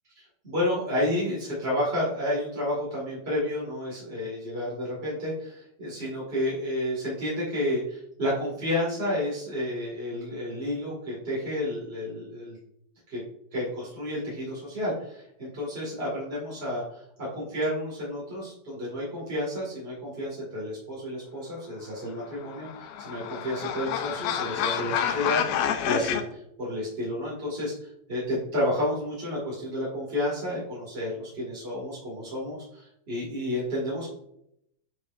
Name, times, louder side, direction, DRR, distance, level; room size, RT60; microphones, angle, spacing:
voice 1, 0.4-12.6 13.1-13.2 13.5-17.0 17.3-34.1, left 1 dB, 25° right, -6 dB, 1.6 m, -31 dB
sound 1, 22.3-26.2, left 9 dB, 85° left, 2.6 m, -29 dB
9.1 x 5.0 x 2.6 m, 0.76 s
omnidirectional pair, 4.3 m